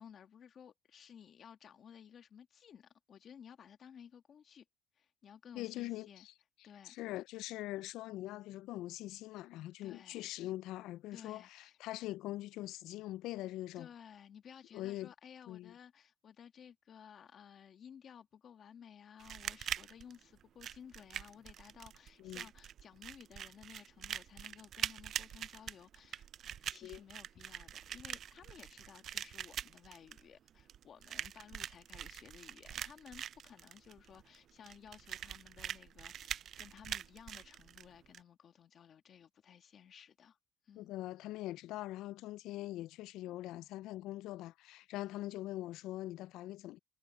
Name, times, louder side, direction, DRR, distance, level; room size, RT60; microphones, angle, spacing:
voice 1, 0.0-4.7 4.9-6.3 6.6-7.0 9.8-10.2 11.1-11.8 13.8-26.3 26.7-40.4 40.6-40.9, left 8 dB, 45° left, 1.8 m, -56 dB
voice 2, 5.6-6.3 6.8-13.9 14.7-15.1 15.5-15.7 22.2-22.4 26.8-27.0 40.8-46.8, left 16 dB, 80° left, 0.4 m, -43 dB
sound 1, 19.2-38.2, right 10 dB, 55° right, 0.5 m, -44 dB
cardioid pair, 115°, 0 cm